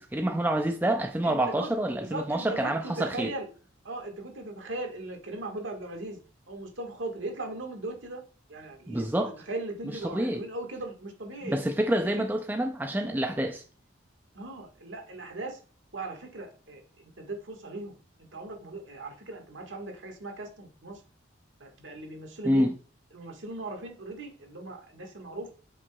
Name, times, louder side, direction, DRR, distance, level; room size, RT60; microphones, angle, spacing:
voice 1, 0.0-3.3 8.9-9.3 10.1-10.4 11.4-13.6 22.4-22.7, right 1 dB, 10° right, 0.3 m, -27 dB
voice 2, 1.2-1.7 2.0-3.5 3.8-6.2 6.5-8.2 8.5-11.6 12.0-12.2 14.3-15.6 15.9-17.9 18.3-21.0 21.6-22.7 23.1-25.5, right 2 dB, 70° right, 1.5 m, -38 dB
8.2 x 5.3 x 2.3 m
head